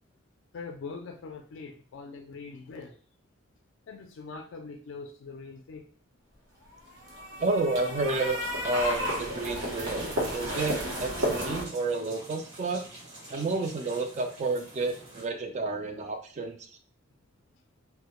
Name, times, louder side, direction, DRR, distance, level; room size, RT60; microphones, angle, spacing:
voice 1, 0.5-3.0 3.9-5.9, left 4 dB, 65° left, 4 dB, 0.3 m, -42 dB
sound 1, 6.9-11.6, equal, 80° right, 0.8 m, -32 dB
voice 2, 7.4-8.4 8.6-12.8 13.3-16.6, right 3 dB, 35° right, 5 dB, 0.3 m, -30 dB
sound 2, 8.8-15.3, right 2 dB, 65° right, 1.2 m, -47 dB
2.2 x 2.1 x 2.9 m, 0.42 s
head